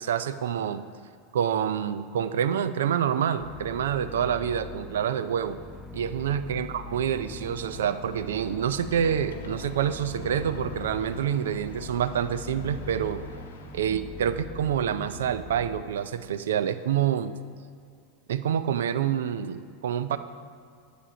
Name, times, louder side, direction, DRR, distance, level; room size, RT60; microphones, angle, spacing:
voice 1, 0.1-0.8 1.3-5.6 5.9-13.2 13.7-17.3 18.3-20.2, right 9 dB, 80° right, 12 dB, 0.4 m, -27 dB
sound 1, 3.4-15.8, left 3 dB, 5° right, 0.9 m, -42 dB
sound 2, 6.9-13.9, left 4 dB, 85° left, 0.8 m, -47 dB
8.4 x 7.5 x 5.0 m, 2.3 s
hypercardioid pair, 95°, 0 cm